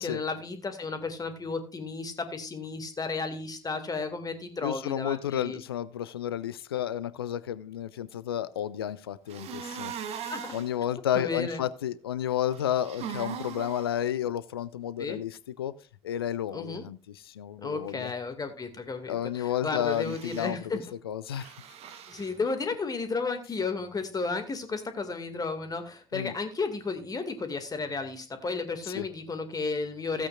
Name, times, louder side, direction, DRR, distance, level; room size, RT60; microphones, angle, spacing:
voice 1, 0.0-5.6 10.3-10.6 11.2-11.6 15.0-15.2 16.5-16.8 17.6-20.8 22.1-30.3, left 4 dB, 30° left, 7 dB, 2.2 m, -33 dB
voice 2, 4.6-9.9 10.2-15.7 16.0-17.0 17.3-18.1 19.1-20.6 21.0-21.5 26.1-26.3 28.9-29.0, left 10 dB, 80° left, 18 dB, 0.5 m, -31 dB
sound 1, 9.3-10.7 12.5-13.9 19.8-20.5 21.3-22.3, right 8 dB, 55° right, 1.2 m, -40 dB
16.0 x 8.5 x 2.5 m, 0.37 s
figure-of-eight pair, 45°, 13 cm